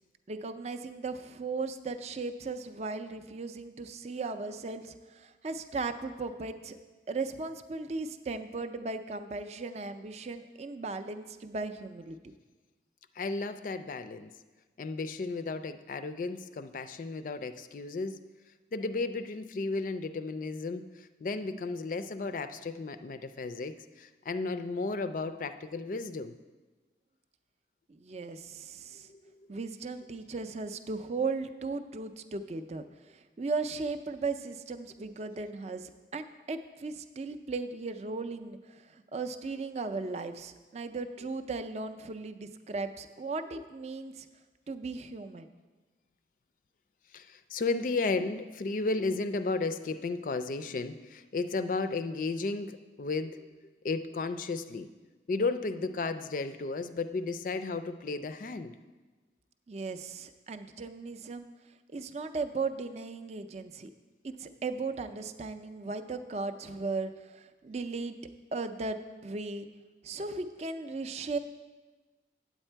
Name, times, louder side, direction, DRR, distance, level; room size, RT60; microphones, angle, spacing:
voice 1, 0.3-6.8 7.1-12.3 27.9-29.1 29.5-44.3 44.7-45.5 59.7-61.5 61.9-63.9 64.2-68.2 68.5-69.7 70.0-71.4, right 3 dB, 35° right, 8 dB, 0.4 m, -37 dB
voice 2, 13.2-14.3 14.8-18.3 18.7-26.4 29.1-29.2 47.1-54.9 55.3-58.8, left 3 dB, 45° left, 11 dB, 0.3 m, -34 dB
8.8 x 8.1 x 4.5 m, 1.3 s
head